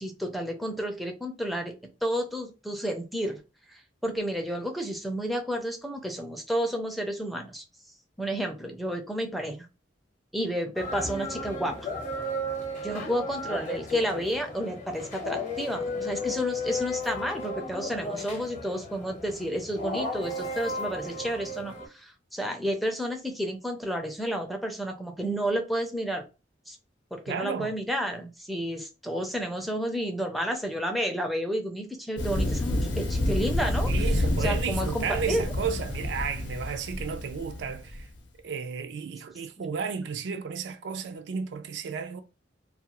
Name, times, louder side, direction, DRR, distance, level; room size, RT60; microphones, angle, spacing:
voice 1, 0.0-1.7 2.0-3.4 3.7-7.6 8.2-9.7 10.3-11.9 12.8-26.2 26.7-26.8 27.1-33.9 34.4-35.4, equal, ahead, 0.4 m, -31 dB
sound 1, 10.8-21.9, left 2 dB, 40° left, 0.7 m, -34 dB
voice 2, 27.3-27.7 33.9-38.1 38.4-42.2, right 6 dB, 65° right, 0.3 m, -33 dB
Thunder, 32.2-38.0, left 1 dB, 75° left, 0.7 m, -29 dB
2.4 x 2.2 x 2.9 m
head